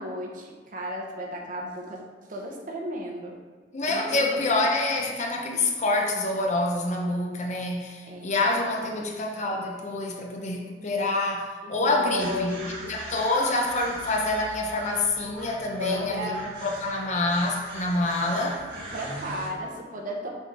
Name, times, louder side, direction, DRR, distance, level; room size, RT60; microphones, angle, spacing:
voice 1, 0.0-2.0 2.3-3.4 3.9-4.2 4.5-4.6 8.0-8.4 8.8-9.1 11.6-12.8 15.7-16.4 18.7-20.3, left 1 dB, 45° right, -1 dB, 1.0 m, -34 dB
voice 2, 3.7-16.3 16.6-18.6, left 2 dB, 40° left, 1 dB, 0.7 m, -27 dB
sound 1, 12.2-19.5, right 1 dB, 75° right, 1.5 m, -40 dB
6.2 x 3.8 x 4.3 m, 1.4 s
head